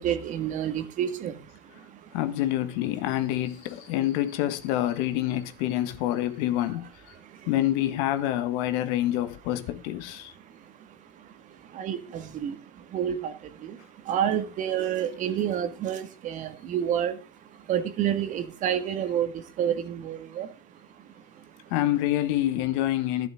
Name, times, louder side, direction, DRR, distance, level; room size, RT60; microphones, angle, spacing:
voice 1, 0.0-2.1 7.1-7.5 10.3-21.7, right 9 dB, 45° right, 1.7 m, -30 dB
voice 2, 2.1-6.9 7.5-10.3 21.7-23.3, left 13 dB, 65° left, 1.5 m, -27 dB
12.0 x 10.5 x 3.7 m
hypercardioid pair, 100°, 18 cm